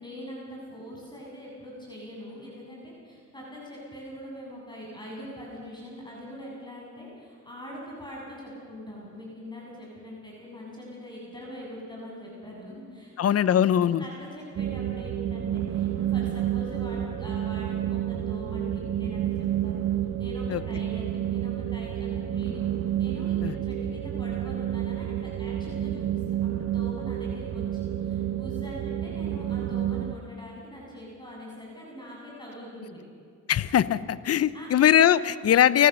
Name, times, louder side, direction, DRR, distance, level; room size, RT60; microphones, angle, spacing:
voice 1, 0.0-13.5 14.0-19.8 20.2-33.0 34.5-34.7, equal, 15° left, -4 dB, 7.6 m, -43 dB
voice 2, 13.2-14.0 20.5-20.6 23.4-23.5 33.5-35.9, left 10 dB, 55° left, 17 dB, 0.9 m, -21 dB
sound 1, 14.6-30.1, right 11 dB, 60° right, 1.0 m, -30 dB
29.0 x 15.0 x 6.8 m, 2.4 s
cardioid pair, 90°, 30 cm